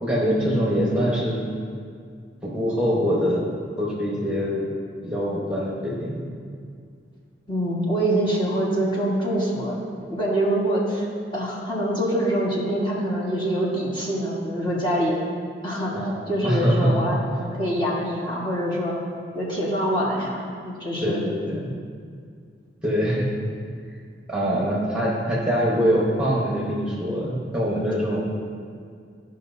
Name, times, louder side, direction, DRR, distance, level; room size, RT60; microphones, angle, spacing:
voice 1, 0.0-1.5 2.4-3.4 3.8-4.7 5.0-6.2 15.9-16.9 21.0-21.7 22.8-23.3 24.3-28.2, equal, 5° right, -6 dB, 1.2 m, -24 dB
voice 2, 7.5-9.8 10.1-11.1 11.3-15.1 15.6-17.2 17.5-18.9 19.3-20.4 20.6-21.4, right 1 dB, 25° left, -6 dB, 1.6 m, -25 dB
14.5 x 5.6 x 2.7 m, 2.2 s
head